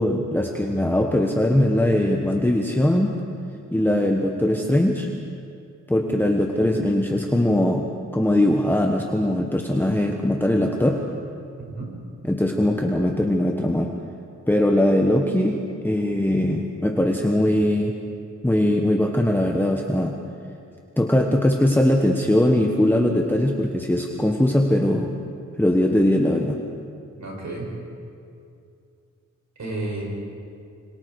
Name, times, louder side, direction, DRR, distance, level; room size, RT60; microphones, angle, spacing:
voice 1, 0.0-3.1 3.7-5.1 5.9-11.0 12.2-13.9 14.5-15.6 15.8-17.9 18.4-20.2 21.0-25.1 25.6-26.6, left 1 dB, 5° left, 2 dB, 1.3 m, -21 dB
voice 2, 27.2-27.7 29.6-30.0, right 2 dB, 70° right, -2 dB, 7.0 m, -31 dB
27.5 x 24.5 x 4.8 m, 2.5 s
wide cardioid pair, 115°, 30 cm